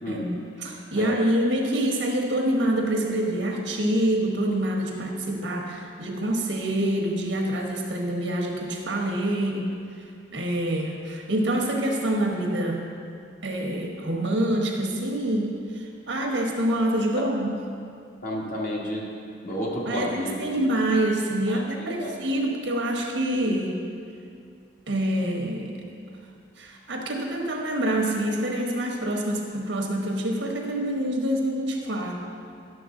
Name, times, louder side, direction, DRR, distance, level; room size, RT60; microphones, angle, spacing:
voice 1, 0.1-9.7 10.3-12.8 13.4-17.6 19.9-23.9 24.9-25.7 26.6-32.2, right 1 dB, 80° right, 1 dB, 1.2 m, -26 dB
voice 2, 18.2-19.1 19.4-20.6 21.5-22.2, equal, 45° left, -3 dB, 1.5 m, -31 dB
11.0 x 6.8 x 3.8 m, 2.3 s
head